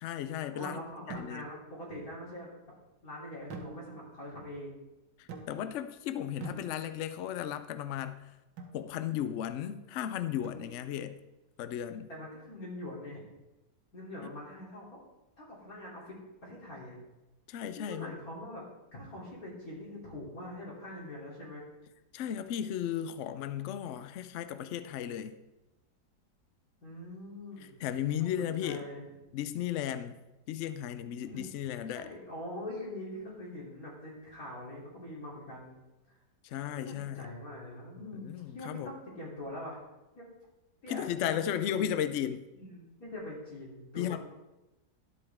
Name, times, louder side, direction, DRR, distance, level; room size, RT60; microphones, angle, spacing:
voice 1, 0.0-0.8 1.1-1.5 5.2-8.2 8.7-11.2 11.6-12.1 17.5-18.1 22.1-25.4 27.8-28.8 29.3-30.2 30.5-32.1 36.4-37.3 38.2-38.9 40.9-42.4 44.0-44.2, left 10 dB, 85° left, 11 dB, 0.6 m, -35 dB
voice 2, 0.5-2.6 3.0-4.8 12.1-13.3 13.9-15.0 15.4-17.0 17.8-18.6 18.9-21.6 26.8-27.8 28.2-29.1 31.2-31.5 32.0-35.7 36.7-38.3 38.5-39.8 40.1-40.3 40.8-41.9 42.5-44.2, left 1 dB, 55° left, -5 dB, 3.6 m, -43 dB
sound 1, 1.1-1.7 3.5-4.2 5.3-5.9 6.4-7.2 8.6-8.9 10.4-11.1, right 3 dB, 85° right, 1.7 m, -46 dB
12.5 x 7.9 x 3.5 m, 1.0 s
omnidirectional pair, 1.9 m